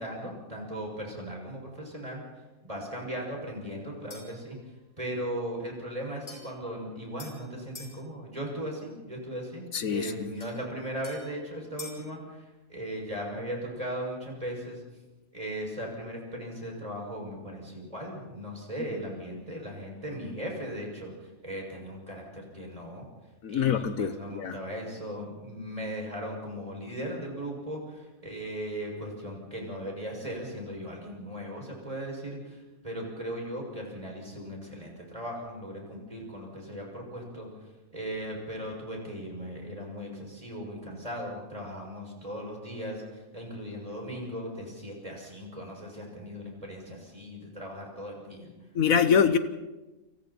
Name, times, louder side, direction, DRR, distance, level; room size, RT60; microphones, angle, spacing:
voice 1, 0.0-2.2 2.6-4.6 5.0-12.4 12.7-14.8 15.3-21.1 21.4-23.1 23.5-37.5 37.9-48.5, equal, 25° right, -1 dB, 7.0 m, -38 dB
sound 1, 4.1-4.5 6.3-8.0 10.4-12.1, left 3 dB, 45° left, 7.1 m, -48 dB
voice 2, 9.7-10.3 23.4-24.6 48.7-49.4, left 7 dB, 75° left, 10 dB, 1.5 m, -25 dB
29.0 x 27.5 x 4.4 m, 1.1 s
omnidirectional pair, 1.5 m